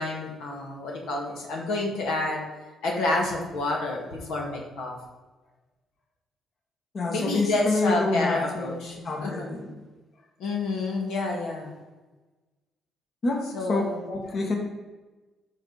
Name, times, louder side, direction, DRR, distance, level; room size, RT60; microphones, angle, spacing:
voice 1, 0.0-2.4 2.8-5.0 7.1-9.5 10.4-11.7 13.5-14.0, left 2 dB, 90° left, -1 dB, 2.0 m, -29 dB
voice 2, 6.9-9.8 13.2-14.6, left 3 dB, 50° left, 1 dB, 1.6 m, -28 dB
12.5 x 5.3 x 4.1 m, 1.2 s
cardioid pair, 90°, 0 cm